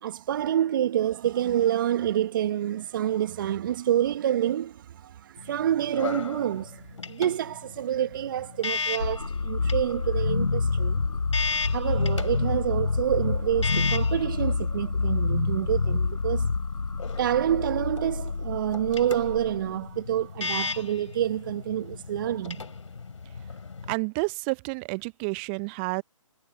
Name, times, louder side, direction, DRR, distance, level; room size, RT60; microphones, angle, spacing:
voice 1, 0.0-11.0 11.7-16.5 17.2-22.6, right 11 dB, 40° right, 1.4 m, -27 dB
sound 1, 5.4-23.9, left 5 dB, 65° left, 3.1 m, -37 dB
sound 2, 9.0-19.9, left 4 dB, 90° left, 0.6 m, -27 dB
voice 2, 23.9-26.0, right 32 dB, 20° right, 0.8 m, -30 dB
figure-of-eight pair, 140°, 17 cm